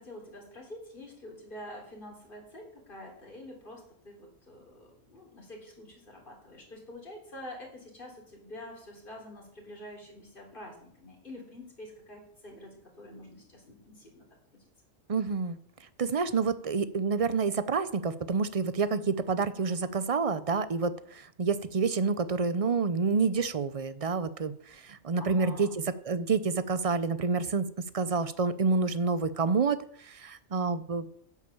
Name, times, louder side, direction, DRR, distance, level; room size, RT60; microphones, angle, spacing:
voice 1, 0.0-14.2 14.5-14.7 25.2-25.8, left 1 dB, 45° left, -1 dB, 3.9 m, -47 dB
voice 2, 15.1-15.6 16.0-27.7 27.9-31.1, right 4 dB, 40° right, 14 dB, 0.6 m, -28 dB
9.8 x 8.3 x 7.1 m, 0.65 s
omnidirectional pair, 1.3 m